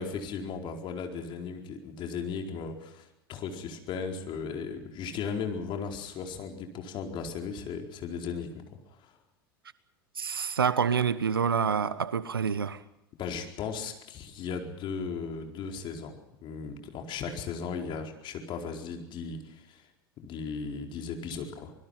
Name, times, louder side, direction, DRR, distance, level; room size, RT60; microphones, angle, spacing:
voice 1, 0.0-8.6 9.0-9.1 13.2-19.9 20.2-21.7, left 5 dB, 45° left, 4.5 m, -36 dB
voice 2, 10.2-12.8, right 7 dB, 85° right, 1.2 m, -27 dB
25.0 x 21.0 x 5.8 m
hypercardioid pair, 85°, 12 cm